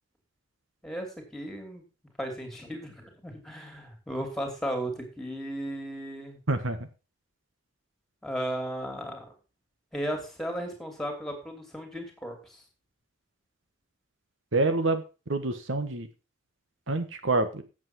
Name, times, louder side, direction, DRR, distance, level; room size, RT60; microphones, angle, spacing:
voice 1, 0.8-1.8 2.2-6.4 8.2-9.3 9.9-12.6, equal, ahead, 3 dB, 2.9 m, -35 dB
voice 2, 6.5-6.8 14.5-15.0 15.3-16.1 16.9-17.6, right 2 dB, 75° right, 8 dB, 1.3 m, -26 dB
8.8 x 7.5 x 6.0 m, 0.32 s
head